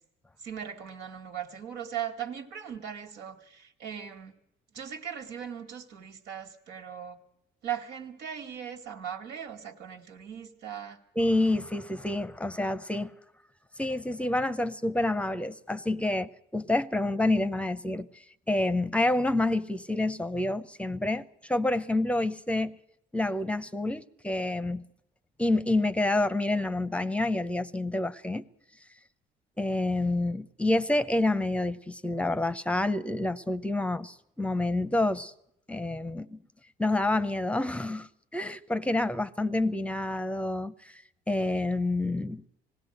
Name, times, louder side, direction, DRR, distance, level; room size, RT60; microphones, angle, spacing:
voice 1, 0.4-4.3 4.7-7.2 7.6-11.0, right 9 dB, 85° right, 2.4 m, -39 dB
voice 2, 11.2-13.1 13.8-18.1 18.5-22.7 23.1-24.8 25.4-28.4 29.6-35.3 35.7-36.4 36.8-42.4, left 2 dB, 5° left, 0.7 m, -28 dB
19.5 x 16.5 x 7.9 m
cardioid pair, 110°, 17 cm